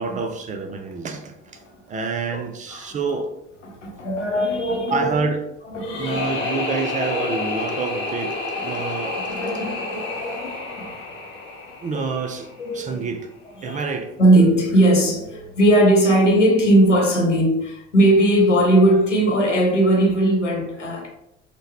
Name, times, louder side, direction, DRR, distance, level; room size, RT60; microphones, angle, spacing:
voice 1, 0.0-1.3 1.9-3.3 4.9-5.4 6.0-8.4 8.6-9.4 11.8-12.5 12.7-13.2 13.6-14.1, right 4 dB, 25° right, 0.3 m, -27 dB
voice 2, 3.6-5.2 5.7-6.3 8.7-8.9 9.3-11.0 11.7-11.8 12.6-13.1 13.6-13.8 14.2-21.1, right 1 dB, 90° left, 0.6 m, -19 dB
sound 1, 5.8-12.8, left 3 dB, 30° left, 1.1 m, -29 dB
3.6 x 2.1 x 3.0 m
figure-of-eight pair, 55°, 35 cm